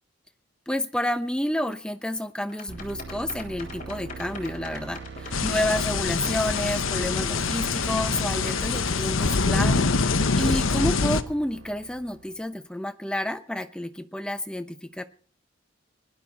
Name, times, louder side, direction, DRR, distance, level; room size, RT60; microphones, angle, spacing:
voice 1, 0.7-15.0, left 1 dB, 5° left, 9 dB, 0.8 m, -30 dB
sound 1, 2.5-8.6, left 4 dB, 40° left, 3.7 m, -42 dB
sound 2, 2.7-12.5, right 4 dB, 60° right, 2.3 m, -41 dB
sound 3, 5.3-11.2, left 4 dB, 85° left, 1.0 m, -25 dB
20.0 x 11.5 x 4.1 m, 0.43 s
head